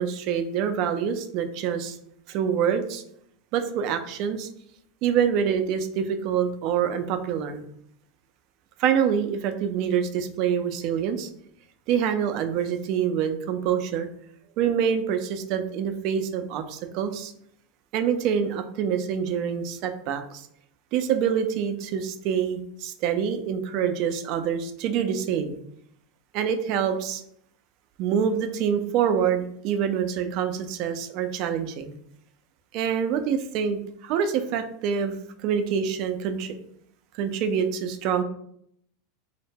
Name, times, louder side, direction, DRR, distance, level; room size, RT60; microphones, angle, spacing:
voice 1, 0.0-2.0 2.3-3.0 3.5-4.5 5.0-7.6 8.8-11.3 11.9-14.1 14.6-17.3 17.9-20.4 20.9-25.6 26.3-27.2 28.0-32.0 32.7-35.2 35.4-36.5 37.1-38.2, right 8 dB, 55° right, 8 dB, 0.3 m, -26 dB
2.1 x 2.0 x 3.3 m, 0.69 s
hypercardioid pair, 95°, 0 cm